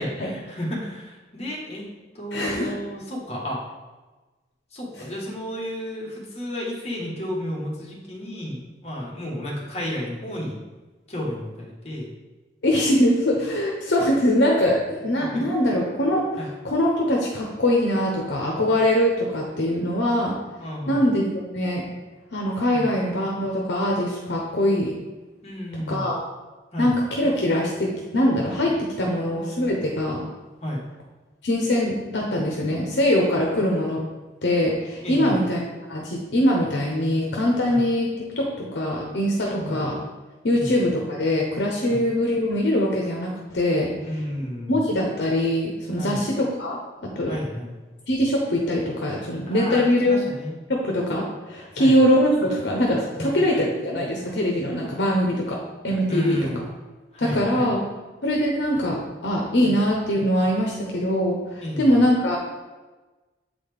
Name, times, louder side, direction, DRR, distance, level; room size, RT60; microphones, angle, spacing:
voice 1, 0.0-1.9 2.1-3.6 4.7-10.6 11.1-12.1 15.3-15.4 16.4-16.5 20.6-21.1 22.7-22.9 25.4-26.1 26.7-26.9 30.6-30.8 35.0-35.4 37.7-37.9 39.4-39.8 40.5-40.8 41.9-42.1 44.1-44.8 46.0-46.2 47.3-47.8 49.5-50.5 51.8-52.0 54.6-54.7 56.1-56.6 57.1-57.7 59.6-59.7 61.6-61.9, equal, 35° left, -3 dB, 1.4 m, -32 dB
voice 2, 2.3-2.7 5.0-5.1 12.6-20.4 20.9-21.8 22.3-24.9 25.9-26.2 26.8-30.2 31.4-34.0 34.4-35.6 35.9-40.0 40.4-44.2 44.7-47.4 48.1-50.2 50.7-55.6 55.8-56.4 57.2-57.8 58.2-62.4, left 1 dB, 75° left, -1 dB, 0.8 m, -22 dB
7.6 x 4.1 x 3.5 m, 1.2 s
head